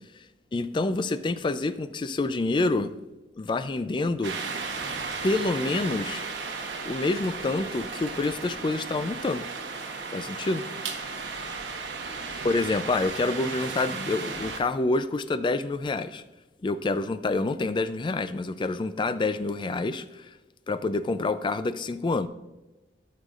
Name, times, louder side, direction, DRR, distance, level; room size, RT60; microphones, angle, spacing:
voice 1, 0.5-2.9 3.4-4.4 5.2-6.2 6.8-9.5 10.1-10.6 12.4-16.2 16.6-20.3 20.7-22.3, left 3 dB, 25° left, 12 dB, 0.3 m, -27 dB
sound 1, 4.2-14.6, right 4 dB, 85° right, 1.0 m, -35 dB
12.5 x 6.5 x 2.4 m, 1.1 s
head